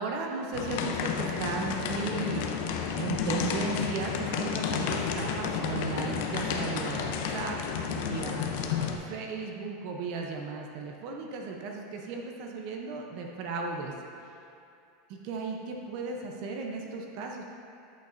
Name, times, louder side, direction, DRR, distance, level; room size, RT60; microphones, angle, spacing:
voice 1, 0.0-2.5 3.0-8.5 9.0-13.9 15.1-17.4, right 4 dB, 50° right, 1 dB, 0.6 m, -35 dB
sound 1, 0.5-9.0, left 7 dB, 60° left, 0.5 m, -31 dB
8.4 x 6.4 x 2.6 m, 2.6 s
supercardioid pair, 160°, 0 cm